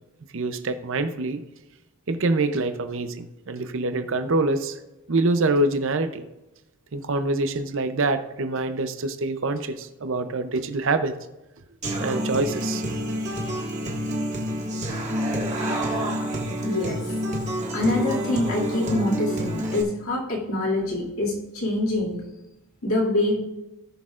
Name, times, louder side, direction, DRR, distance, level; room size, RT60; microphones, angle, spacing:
voice 1, 0.3-1.4 2.1-4.8 5.1-6.2 6.9-11.1 12.0-12.8, right 2 dB, 60° right, 9 dB, 0.6 m, -25 dB
Human voice / Acoustic guitar, 11.8-19.8, equal, 30° right, 1.6 m, -28 dB
voice 2, 16.6-17.0 17.7-22.2 22.8-23.4, left 1 dB, 75° left, -4 dB, 2.4 m, -25 dB
17.5 x 6.4 x 2.5 m, 0.97 s
head